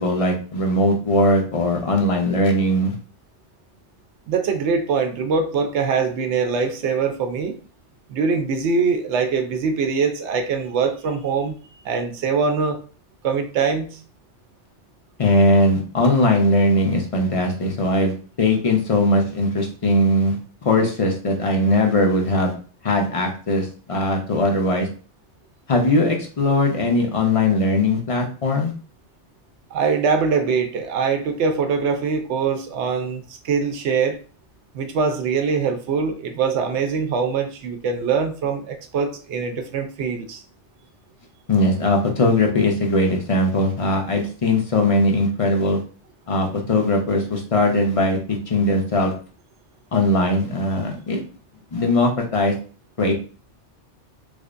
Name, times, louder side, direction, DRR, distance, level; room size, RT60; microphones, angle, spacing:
voice 1, 0.0-3.0 15.2-20.4 20.6-22.5 22.8-24.9 25.7-28.7 41.5-45.8 46.3-49.1 49.9-51.2 51.7-52.5 53.0-53.1, left 1 dB, 40° left, 1 dB, 0.6 m, -20 dB
voice 2, 4.3-7.6 8.1-11.6 11.8-12.8 13.2-14.0 29.7-34.2 34.7-40.4, right 5 dB, 75° right, 6 dB, 0.9 m, -23 dB
4.9 x 2.0 x 2.5 m, 0.39 s
omnidirectional pair, 1.2 m